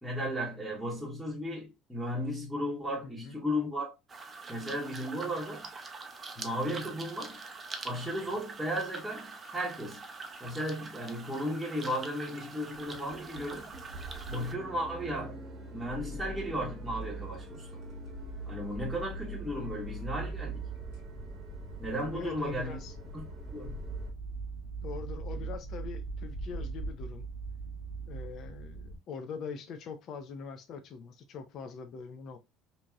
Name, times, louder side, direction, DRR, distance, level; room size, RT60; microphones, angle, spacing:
voice 1, 0.0-3.9 4.5-5.7 6.3-7.4 7.8-10.0 10.4-13.7 14.3-15.4 15.7-17.7 18.5-20.6 21.8-22.8 23.1-23.3 23.5-23.9 25.3-25.4, equal, ahead, 1.0 m, -35 dB
voice 2, 3.0-3.4 22.1-22.9 24.8-27.3 28.1-32.4, left 6 dB, 50° left, 0.4 m, -42 dB
sound 1, 4.1-14.5, right 4 dB, 25° right, 0.5 m, -44 dB
sound 2, 10.5-10.6 11.0-11.4 11.7-11.8 12.2-12.3 12.5-24.1, right 1 dB, 40° right, 0.9 m, -46 dB
sound 3, 15.8-29.0, right 3 dB, 80° left, 1.1 m, -41 dB
2.8 x 2.6 x 2.2 m
cardioid pair, 130°, 0 cm